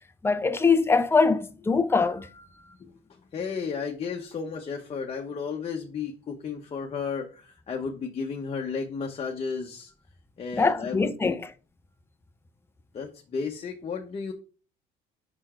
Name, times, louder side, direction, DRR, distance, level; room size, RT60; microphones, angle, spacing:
voice 1, 0.2-2.5 10.5-11.5, left 4 dB, 15° left, 0.6 m, -23 dB
voice 2, 2.8-9.9 10.4-11.4 12.9-14.3, left 5 dB, 35° left, 1.0 m, -33 dB
5.9 x 4.5 x 4.3 m
cardioid pair, 110°, 17 cm